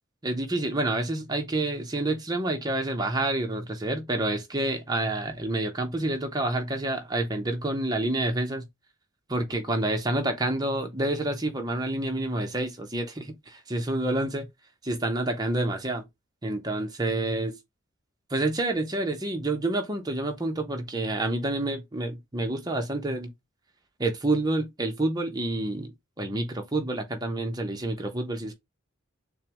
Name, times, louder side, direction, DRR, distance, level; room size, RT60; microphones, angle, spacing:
voice 1, 0.2-8.7 9.3-14.5 14.8-16.0 16.4-17.5 18.3-23.3 24.0-28.5, right 2 dB, 20° right, 1.0 m, -28 dB
6.7 x 2.3 x 2.9 m
head